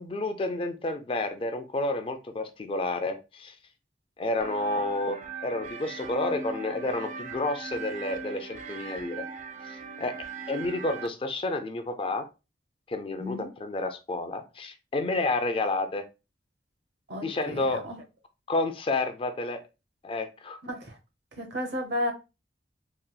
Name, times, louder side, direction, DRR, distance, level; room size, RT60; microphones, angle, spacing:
voice 1, 0.0-3.5 4.2-9.2 9.7-10.1 10.5-12.3 12.9-16.0 17.2-17.8 18.5-19.6 20.0-20.6, left 2 dB, 30° left, 0.4 m, -30 dB
sound 1, 4.4-11.1, right 4 dB, 45° right, 0.4 m, -39 dB
voice 2, 13.2-13.5 17.1-18.0 20.6-20.9 21.4-22.1, left 1 dB, 70° right, 0.9 m, -33 dB
3.9 x 2.3 x 2.3 m
head